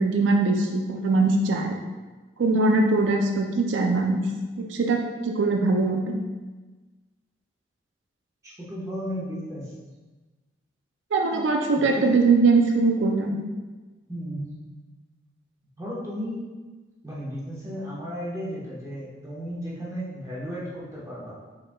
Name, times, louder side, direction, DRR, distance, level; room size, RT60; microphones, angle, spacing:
voice 1, 0.0-1.8 2.4-4.3 4.6-6.2 11.1-13.4, right 3 dB, 90° right, 2 dB, 0.5 m, -22 dB
voice 2, 8.4-9.7 11.3-11.4 11.8-12.1 14.1-14.6 15.8-16.4 17.0-21.4, equal, 15° right, -8 dB, 1.2 m, -34 dB
5.1 x 4.2 x 2.3 m, 1.3 s
head